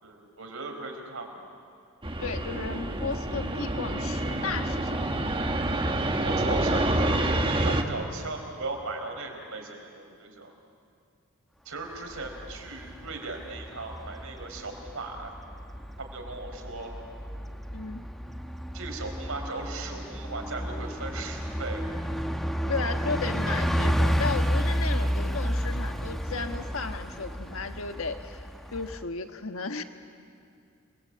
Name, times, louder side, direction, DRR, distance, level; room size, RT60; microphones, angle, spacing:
voice 1, 0.0-1.5 5.8-7.2 7.6-10.5 11.6-15.3 16.0-17.0 18.7-21.8 24.9-25.1, right 3 dB, 75° right, 3 dB, 4.5 m, -38 dB
Fixed-wing aircraft airplane, 2.0-7.8, right 1 dB, 25° right, 1.6 m, -27 dB
voice 2, 2.2-5.0 17.7-18.0 22.7-28.4 28.7-29.8, left 4 dB, 70° left, 7 dB, 1.4 m, -34 dB
Bus, 11.9-29.0, equal, ahead, 1.1 m, -31 dB
29.0 x 22.0 x 8.6 m, 2.4 s
head